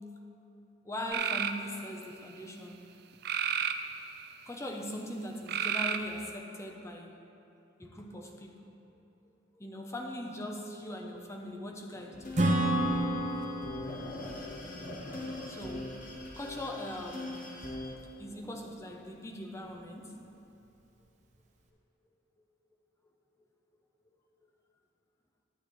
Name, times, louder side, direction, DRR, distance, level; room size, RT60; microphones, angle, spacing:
voice 1, 0.8-2.8 4.5-7.2 7.8-8.8 9.6-12.4 15.5-16.0 16.4-17.5 17.9-20.2, left 1 dB, 15° left, 2 dB, 0.6 m, -41 dB
sound 1, 1.1-1.6 3.2-4.3 5.5-6.3, right 8 dB, 55° right, 0.3 m, -31 dB
sound 2, 11.9-17.9, left 1 dB, 40° left, 0.9 m, -42 dB
Acoustic guitar / Strum, 12.3-15.9, right 1 dB, 40° right, 0.8 m, -31 dB
11.5 x 8.2 x 3.0 m, 2.8 s
head